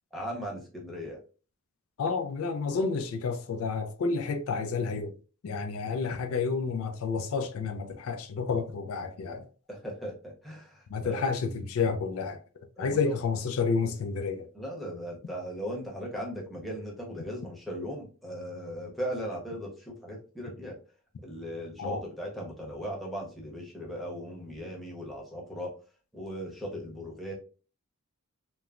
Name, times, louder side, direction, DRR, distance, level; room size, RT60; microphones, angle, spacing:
voice 1, 0.1-1.2 2.7-2.8 9.7-11.2 12.8-13.2 14.5-20.8 21.2-25.7 26.1-27.3, equal, ahead, 0.8 m, -38 dB
voice 2, 2.0-5.1 5.4-9.5 10.9-12.4 12.8-14.5 21.8-22.0, left 4 dB, 75° left, 0.4 m, -30 dB
3.1 x 2.0 x 2.4 m
head